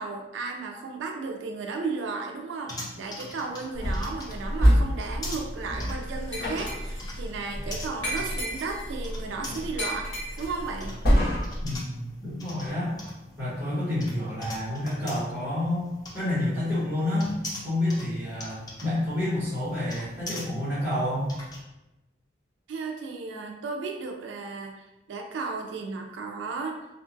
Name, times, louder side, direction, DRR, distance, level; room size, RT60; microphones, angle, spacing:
voice 1, 0.0-10.1 10.4-11.0 22.7-26.8, right 4 dB, 75° right, 2 dB, 0.3 m, -34 dB
sound 1, 2.7-21.6, left 1 dB, 20° left, 0.4 m, -43 dB
sound 2, 3.7-11.8, equal, 60° left, 1.3 m, -28 dB
Glass, 6.3-7.1 8.0-9.0 9.8-10.7, equal, 75° left, 1.0 m, -35 dB
voice 2, 11.6-12.9 13.4-15.8 16.1-17.3 17.6-21.3, left 1 dB, 10° right, -14 dB, 1.2 m, -29 dB
2.8 x 2.4 x 2.5 m, 0.99 s
head